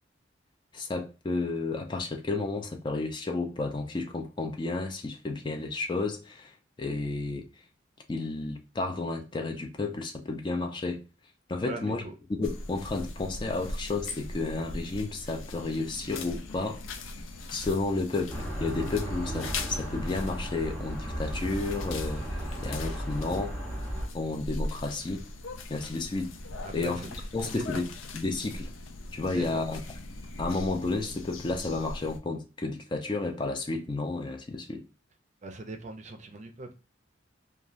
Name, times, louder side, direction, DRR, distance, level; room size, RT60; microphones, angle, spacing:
voice 1, 0.7-7.5 8.1-11.0 11.5-12.0 12.3-16.8 17.5-23.6 24.1-25.3 25.7-26.3 26.7-27.9 28.1-28.7 29.1-29.8 30.4-34.9, left 3 dB, 25° left, 0.3 m, -32 dB
voice 2, 11.6-12.1 26.6-27.1 27.4-27.8 29.3-29.7 35.4-36.7, right 2 dB, 40° right, 0.5 m, -40 dB
sound 1, 12.4-32.2, left 2 dB, 85° left, 0.4 m, -40 dB
sound 2, 18.3-24.1, equal, 10° left, 0.7 m, -35 dB
3.1 x 2.3 x 2.5 m
head